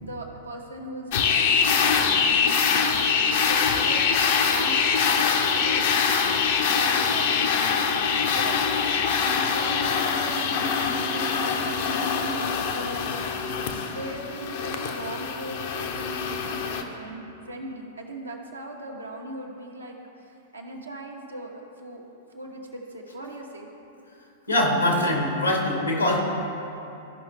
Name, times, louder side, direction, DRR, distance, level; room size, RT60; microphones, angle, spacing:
voice 1, 0.0-8.6 9.1-13.3 13.9-22.0 22.3-23.7 25.5-25.6, right 2 dB, 80° right, 0 dB, 1.2 m, -39 dB
sound 1, 1.1-16.8, left 6 dB, 55° left, 0.7 m, -24 dB
voice 2, 24.5-26.2, left 1 dB, 85° left, -1 dB, 1.7 m, -23 dB
14.0 x 5.6 x 3.3 m, 2.9 s
figure-of-eight pair, 100°, 0 cm